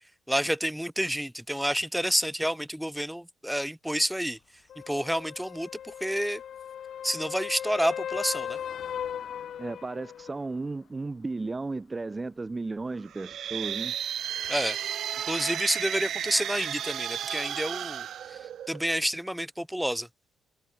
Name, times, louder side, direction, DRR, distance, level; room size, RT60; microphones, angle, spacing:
voice 1, 0.3-4.4 4.9-6.4 7.0-8.6 14.5-14.8 15.3-18.4 18.7-20.1, equal, ahead, 1.0 m, -29 dB
sound 1, 4.7-10.4 14.4-14.5, left 9 dB, 65° left, 2.1 m, -37 dB
voice 2, 9.6-13.9, right 3 dB, 25° right, 1.5 m, -34 dB
sound 2, 13.1-19.0, right 10 dB, 65° right, 0.4 m, -33 dB
cardioid pair, 90°, 0 cm